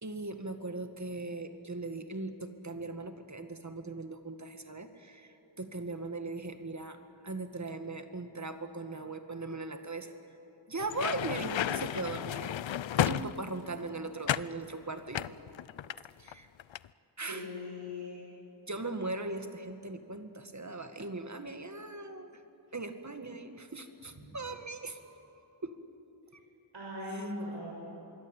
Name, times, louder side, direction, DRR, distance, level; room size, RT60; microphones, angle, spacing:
voice 1, 0.0-7.0 7.2-10.1 10.7-12.5 12.8-15.6 16.2-16.5 17.2-17.5 18.7-22.3 22.7-25.2 25.6-25.8 27.1-27.3, right 2 dB, 40° right, 8 dB, 1.9 m, -39 dB
sound 1, 10.8-13.7 14.3-14.6 15.1-16.3 16.6-16.9, left 10 dB, 80° left, 0.6 m, -32 dB
voice 2, 17.2-18.2 26.7-27.7, left 1 dB, 70° right, -6 dB, 6.6 m, -39 dB
25.5 x 22.0 x 9.0 m, 2.9 s
wide cardioid pair, 65°, 45 cm